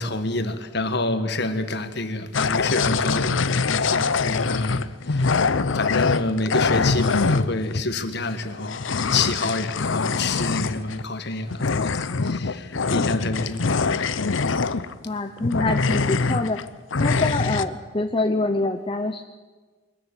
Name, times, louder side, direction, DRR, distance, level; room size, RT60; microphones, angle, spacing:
voice 1, 0.0-5.5 5.7-14.2, left 2 dB, 60° left, 1.6 m, -28 dB
sound 1, 2.3-7.8 8.4-11.0 11.5-15.1 15.4-16.6 16.9-17.7, left 4 dB, 80° left, 0.8 m, -23 dB
voice 2, 15.0-16.6 17.0-19.2, left 2 dB, 25° left, 0.8 m, -25 dB
22.5 x 14.0 x 9.8 m
head